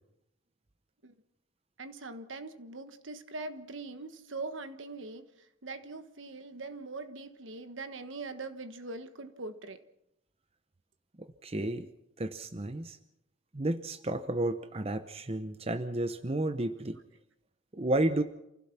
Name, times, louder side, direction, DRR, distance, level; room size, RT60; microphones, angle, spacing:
voice 1, 1.8-9.8 16.8-16.9, right 3 dB, 65° right, 1.4 m, -42 dB
voice 2, 11.2-11.9 12.2-13.0 13.5-17.0 17.7-18.2, right 1 dB, 30° right, 0.8 m, -32 dB
28.0 x 16.0 x 6.0 m
head